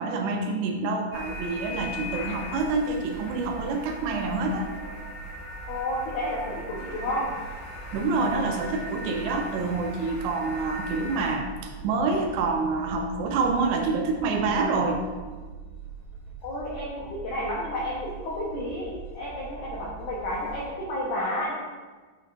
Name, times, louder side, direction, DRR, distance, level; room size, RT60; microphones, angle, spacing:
voice 1, 0.0-4.7 7.9-15.0, right 3 dB, 85° right, 3 dB, 2.8 m, -27 dB
sound 1, 1.1-11.3, left 2 dB, 55° left, 2.9 m, -40 dB
sound 2, 1.1-20.8, right 5 dB, 60° right, 2.1 m, -43 dB
voice 2, 5.7-7.3 16.4-18.9 19.1-21.5, left 1 dB, 80° left, -5 dB, 1.8 m, -31 dB
7.4 x 6.3 x 2.5 m, 1.4 s
omnidirectional pair, 4.9 m